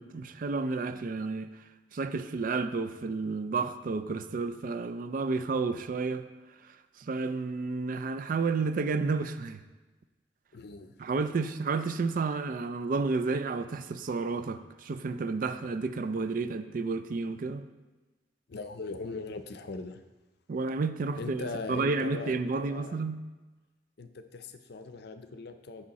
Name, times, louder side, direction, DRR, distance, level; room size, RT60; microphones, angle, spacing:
voice 1, 0.0-1.5 1.9-6.3 7.0-9.6 11.0-17.7 20.5-23.2, right 4 dB, 50° right, 10 dB, 0.4 m, -31 dB
voice 2, 10.5-10.9 18.5-20.0 21.2-23.0 24.0-25.8, left 3 dB, 60° left, 8 dB, 0.5 m, -40 dB
8.7 x 5.5 x 4.1 m, 1.2 s
head